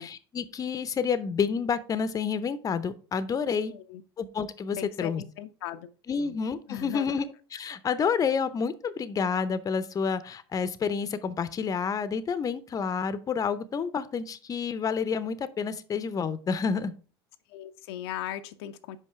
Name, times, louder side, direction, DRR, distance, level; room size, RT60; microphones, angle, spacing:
voice 1, 0.0-3.7 4.2-5.2 6.1-7.3 7.5-16.9, left 6 dB, 25° left, 0.6 m, -29 dB
voice 2, 3.7-4.0 4.8-5.9 6.2-6.4 6.7-7.2 17.5-19.0, left 11 dB, 70° left, 0.5 m, -38 dB
5.4 x 5.0 x 4.8 m
hypercardioid pair, 85°, 14 cm